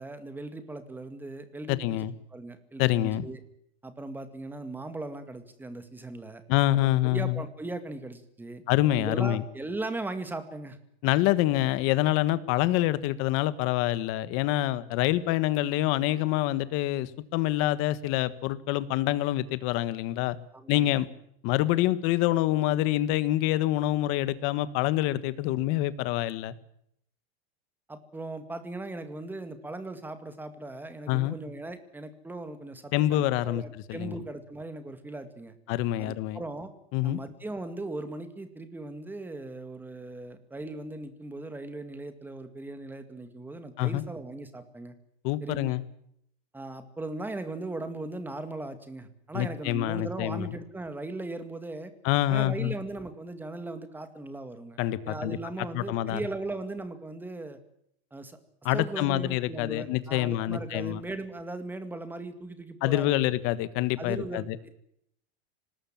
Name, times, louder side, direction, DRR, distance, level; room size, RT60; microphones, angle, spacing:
voice 1, 0.0-2.1 2.3-3.4 3.8-6.4 6.7-8.6 9.0-10.8 20.5-21.0 27.9-35.6 36.0-36.7 37.0-45.0 45.4-45.8 46.5-51.9 52.3-54.8 55.0-57.6 58.1-58.4 58.7-63.3 64.0-64.7, right 2 dB, 5° right, 9 dB, 2.1 m, -38 dB
voice 2, 1.7-2.1 2.8-3.3 6.5-7.4 8.7-9.4 11.0-20.4 20.7-21.1 21.4-26.5 31.1-31.3 32.9-34.2 35.7-36.4 36.9-37.2 43.8-44.0 45.2-45.8 49.3-50.5 52.0-52.7 54.8-55.4 55.7-56.2 58.6-61.0 62.8-64.6, left 15 dB, 45° left, 15 dB, 1.5 m, -26 dB
25.5 x 19.5 x 7.5 m, 0.72 s
supercardioid pair, 160°, 30 cm